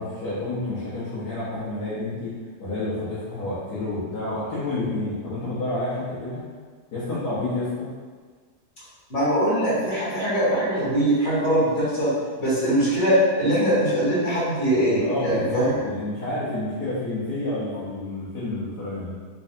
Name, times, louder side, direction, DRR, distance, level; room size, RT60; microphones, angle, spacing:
voice 1, 0.0-2.3 2.6-6.4 6.9-7.9 15.0-19.1, left 2 dB, 70° left, -12 dB, 1.5 m, -29 dB
voice 2, 9.1-15.7, equal, 45° left, -10 dB, 1.9 m, -22 dB
3.8 x 3.2 x 2.7 m, 1.5 s
omnidirectional pair, 1.8 m